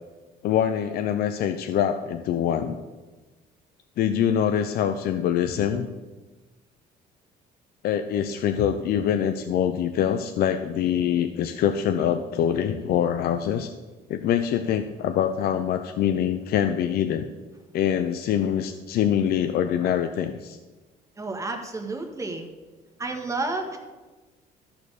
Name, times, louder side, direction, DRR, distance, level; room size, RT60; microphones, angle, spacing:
voice 1, 0.4-2.8 4.0-5.9 7.8-13.7 14.1-17.3 17.7-20.6, left 9 dB, 65° left, 7 dB, 0.6 m, -24 dB
voice 2, 21.2-22.5 23.0-23.8, right 3 dB, 20° right, 3 dB, 1.6 m, -31 dB
13.0 x 4.4 x 6.7 m, 1.3 s
cardioid pair, 110°, 17 cm